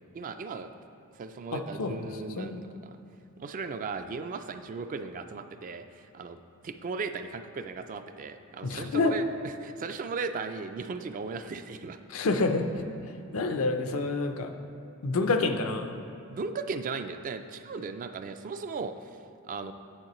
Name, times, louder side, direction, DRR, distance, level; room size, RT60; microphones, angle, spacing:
voice 1, 0.1-0.7 1.2-3.0 3.4-12.0 16.3-18.9 19.5-19.7, right 4 dB, 40° right, 9 dB, 0.3 m, -37 dB
voice 2, 1.5-2.0 2.4-2.6 8.6-9.1 12.1-12.8 13.3-14.5 15.0-15.9, left 3 dB, 75° left, 6 dB, 0.5 m, -28 dB
8.8 x 7.6 x 3.0 m, 2.8 s
head